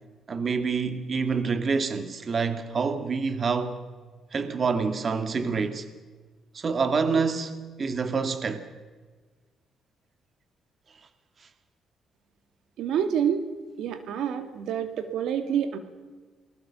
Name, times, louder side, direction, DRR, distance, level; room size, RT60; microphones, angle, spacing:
voice 1, 0.3-3.8 4.3-5.9 6.5-8.7, right 5 dB, 45° right, 2.1 m, -27 dB
voice 2, 12.8-13.4 13.8-15.8, right 8 dB, 80° right, 2.3 m, -27 dB
28.5 x 20.5 x 7.1 m
cardioid pair, 90°, 0 cm